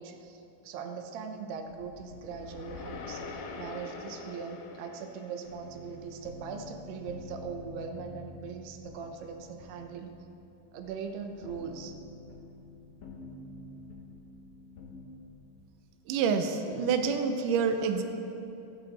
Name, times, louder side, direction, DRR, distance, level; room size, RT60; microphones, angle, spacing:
voice 1, 0.0-10.1 10.7-12.0, right 6 dB, 90° right, 4 dB, 3.1 m, -40 dB
sound 1, 1.7-6.0, left 4 dB, 70° left, 2.4 m, -44 dB
sound 2, 5.5-15.1, left 3 dB, 55° left, 2.6 m, -49 dB
voice 2, 16.1-18.0, right 5 dB, 75° right, 6 dB, 2.0 m, -27 dB
24.0 x 10.5 x 4.2 m, 2.9 s
omnidirectional pair, 4.5 m